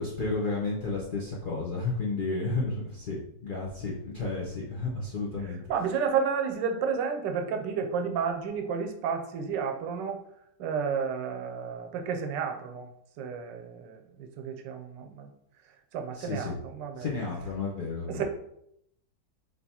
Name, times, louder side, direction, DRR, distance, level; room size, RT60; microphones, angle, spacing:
voice 1, 0.0-5.6 16.1-16.6 17.0-18.2, left 3 dB, 55° left, -5 dB, 0.5 m, -32 dB
voice 2, 5.7-10.2 10.6-12.9 13.2-15.3 15.9-17.1 18.1-18.2, right 6 dB, 90° right, 4 dB, 1.3 m, -31 dB
3.5 x 2.8 x 4.1 m, 0.75 s
omnidirectional pair, 1.9 m